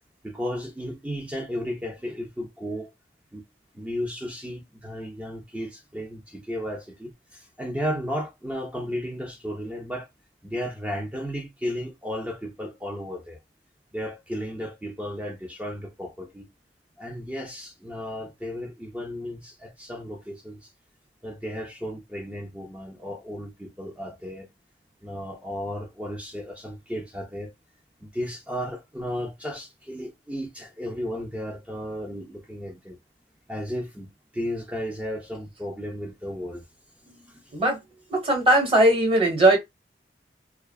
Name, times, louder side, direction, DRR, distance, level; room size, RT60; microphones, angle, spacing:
voice 1, 0.2-2.9 3.3-3.4 3.7-10.1 10.4-13.4 13.9-16.5 17.0-20.6 21.2-24.5 25.0-27.5 28.0-33.0 33.5-34.1 34.3-36.6 37.1-37.4, equal, 10° right, 0.4 m, -34 dB
voice 2, 38.1-39.6, right 1 dB, 30° right, 1.1 m, -19 dB
2.5 x 2.3 x 2.2 m
head